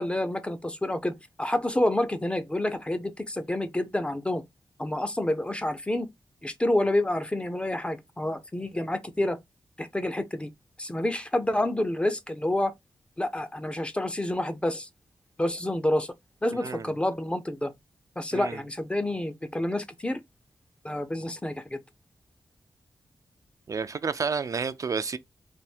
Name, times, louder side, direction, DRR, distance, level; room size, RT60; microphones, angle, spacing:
voice 1, 0.0-4.4 4.8-6.1 6.4-9.4 9.8-10.5 10.8-12.7 13.2-14.9 15.4-16.1 16.4-17.7 18.2-20.2 20.8-21.8, left 1 dB, 15° left, 0.5 m, -28 dB
voice 2, 23.7-25.2, right 5 dB, 45° right, 0.3 m, -30 dB
3.4 x 2.6 x 4.2 m
wide cardioid pair, 140°, 8 cm